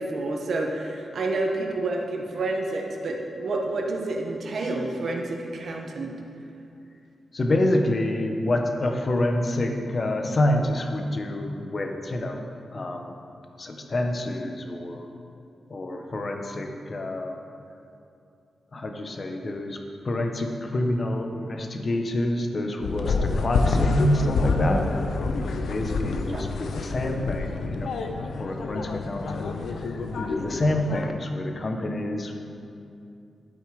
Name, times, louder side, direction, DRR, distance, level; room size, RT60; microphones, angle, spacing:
voice 1, 0.0-6.2 26.3-26.4, right 2 dB, 55° right, 1 dB, 1.4 m, -29 dB
voice 2, 7.3-12.4 12.7-13.2 13.6-15.1 15.7-17.4 18.7-24.9 25.7-32.3, left 1 dB, 35° left, 4 dB, 1.0 m, -27 dB
sound 1, 22.8-31.1, left 3 dB, 80° left, 0.7 m, -28 dB
12.5 x 8.2 x 5.1 m, 2.6 s
wide cardioid pair, 165°, 0 cm